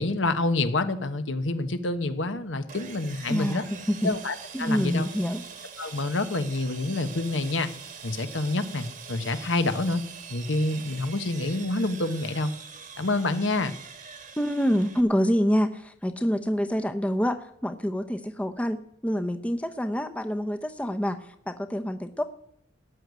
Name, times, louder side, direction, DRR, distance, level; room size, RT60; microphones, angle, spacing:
voice 1, 0.0-3.6 4.0-5.1 5.8-7.7 8.0-10.0 10.3-12.5 13.0-13.7, left 2 dB, 80° left, 9 dB, 1.2 m, -27 dB
Sawing, 2.7-15.0, right 6 dB, 45° right, 1.4 m, -43 dB
voice 2, 3.3-4.1 4.5-5.4 14.4-22.2, equal, 5° left, 7 dB, 0.7 m, -27 dB
17.0 x 6.4 x 9.6 m, 0.69 s
head